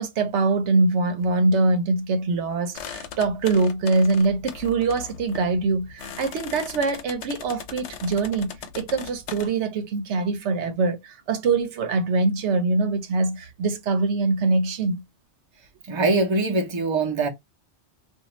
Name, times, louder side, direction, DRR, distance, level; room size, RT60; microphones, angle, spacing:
voice 1, 0.0-15.0, right 3 dB, 80° right, 0.9 m, -23 dB
sound 1, 2.7-9.5, left 7 dB, 85° left, 0.9 m, -39 dB
voice 2, 15.9-17.3, right 3 dB, 30° right, 0.7 m, -22 dB
2.6 x 2.3 x 3.0 m
omnidirectional pair, 1.2 m